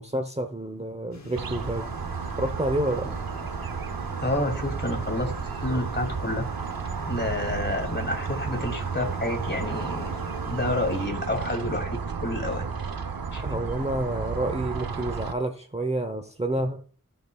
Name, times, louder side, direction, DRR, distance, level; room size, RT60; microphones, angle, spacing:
voice 1, 0.0-2.0 2.4-3.2 13.4-16.8, right 1 dB, 20° right, 7 dB, 0.8 m, -29 dB
sound 1, 1.1-11.1, left 4 dB, 50° left, 1.1 m, -46 dB
sound 2, 1.4-15.3, right 5 dB, 90° right, 0.7 m, -32 dB
voice 2, 4.2-5.3 5.6-6.4 7.1-10.1 10.5-12.0 12.2-12.7 13.3-13.4, left 1 dB, 30° left, 3 dB, 2.6 m, -29 dB
16.0 x 5.7 x 2.3 m, 0.40 s
wide cardioid pair, 55°, 35 cm